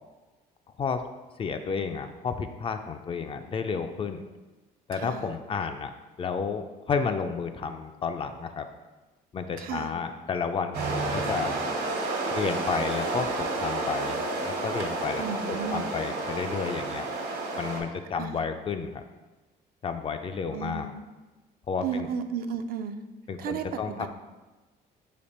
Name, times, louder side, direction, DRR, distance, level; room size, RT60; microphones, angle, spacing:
voice 1, 1.4-4.2 4.9-5.9 6.2-8.7 9.3-11.5 12.3-15.2 15.5-17.1 17.6-19.0 19.8-20.9 21.7-22.1 23.3-24.1, left 5 dB, 30° left, 8 dB, 0.3 m, -31 dB
voice 2, 4.9-5.3 9.6-9.9 15.2-15.9 18.1-18.4 20.5-21.0 21.8-23.0 23.4-24.1, right 7 dB, 60° right, 8 dB, 0.4 m, -34 dB
sound 1, 10.7-17.8, right 2 dB, 75° right, 1.2 m, -30 dB
5.0 x 2.5 x 4.2 m, 1.2 s
cardioid pair, 110°, 17 cm